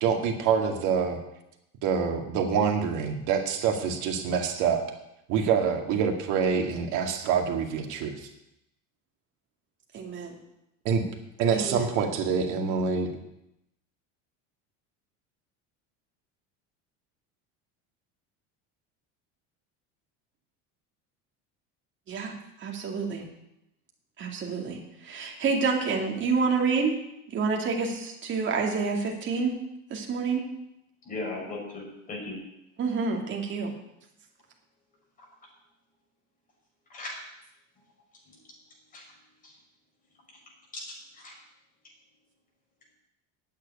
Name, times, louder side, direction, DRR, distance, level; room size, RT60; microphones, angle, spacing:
voice 1, 0.0-1.2 1.8-4.8 5.3-8.3 10.8-11.1 11.4-13.1, right 6 dB, 60° right, 4 dB, 2.2 m, -26 dB
voice 2, 9.9-10.4 11.5-11.9 22.1-22.3 22.6-23.2 24.2-26.9 27.3-29.6 29.9-30.5 32.8-33.7, right 4 dB, 35° right, 1 dB, 2.6 m, -28 dB
voice 3, 31.1-32.4 36.9-37.2 38.9-39.0 39.4-39.5 40.7-40.8 41.2-41.3, left 2 dB, 25° left, -3 dB, 5.7 m, -37 dB
9.2 x 8.1 x 9.5 m, 0.85 s
cardioid pair, 155°, 35 cm